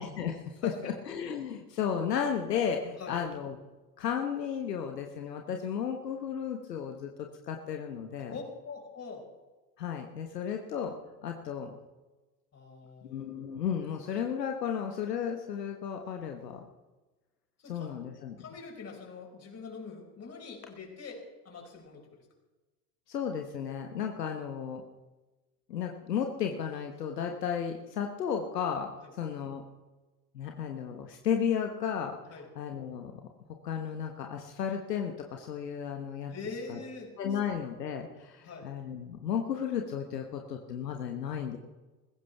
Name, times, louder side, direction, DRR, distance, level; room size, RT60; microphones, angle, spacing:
voice 1, 0.0-3.6 4.0-8.3 9.8-10.9 11.2-11.7 13.0-16.6 17.6-18.4 23.1-24.8 25.7-28.9 29.2-29.6 30.3-32.2 32.6-33.1 33.6-36.3 36.7-36.8 37.2-41.6, left 8 dB, 80° left, 4 dB, 1.3 m, -34 dB
voice 2, 0.6-1.0 3.0-3.2 8.2-9.3 12.5-13.3 17.6-18.0 18.4-22.3 29.0-29.1 32.3-32.5 36.3-37.4 38.4-38.7, left 4 dB, 30° left, 0 dB, 5.5 m, -44 dB
20.5 x 16.0 x 3.5 m, 1.2 s
figure-of-eight pair, 70°, 48 cm